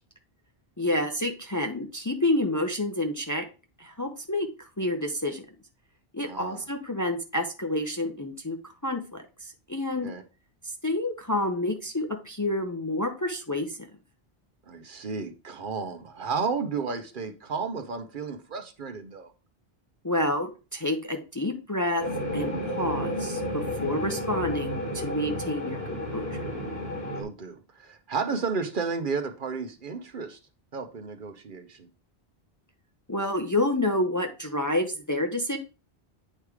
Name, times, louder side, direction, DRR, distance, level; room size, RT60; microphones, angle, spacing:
voice 1, 0.8-3.5 3.8-5.5 6.1-8.6 8.8-10.1 10.8-13.9 20.0-22.0 22.3-26.4 33.1-35.6, left 1 dB, 20° left, 5 dB, 0.6 m, -29 dB
voice 2, 6.2-6.6 10.0-10.2 14.7-19.3 27.0-30.4 30.7-31.9, right 5 dB, 55° right, 8 dB, 0.9 m, -33 dB
sound 1, 22.0-27.2, left 1 dB, 75° left, 2.4 m, -32 dB
8.7 x 3.2 x 4.8 m, 0.32 s
omnidirectional pair, 1.0 m